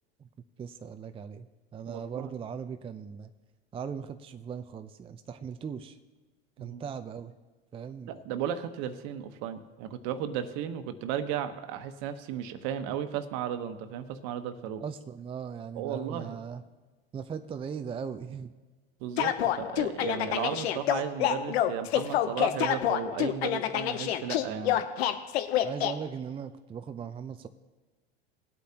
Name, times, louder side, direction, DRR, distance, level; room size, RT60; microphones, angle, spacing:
voice 1, 0.6-1.5 1.7-3.3 3.7-6.0 6.6-7.3 7.7-8.2 14.8-16.6 17.1-18.5 25.6-27.5, right 7 dB, 15° right, 9 dB, 0.5 m, -39 dB
voice 2, 1.8-2.3 6.6-6.8 8.1-14.8 15.7-16.4 19.0-24.8, right 9 dB, 55° right, 9 dB, 1.2 m, -35 dB
sound 1, 19.2-25.9, left 11 dB, 75° left, 0.9 m, -27 dB
19.5 x 8.2 x 2.9 m, 1.3 s
hypercardioid pair, 100°, 32 cm